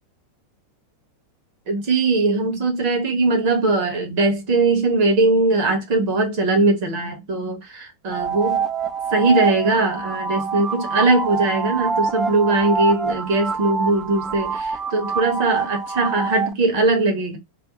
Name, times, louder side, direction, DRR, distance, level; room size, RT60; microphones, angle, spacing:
voice 1, 1.7-8.7 9.1-17.4, right 3 dB, 45° right, 1.1 m, -20 dB
sound 1, 8.1-16.5, right 5 dB, 15° right, 0.3 m, -25 dB
2.7 x 2.1 x 3.9 m
figure-of-eight pair, 90°, 0 cm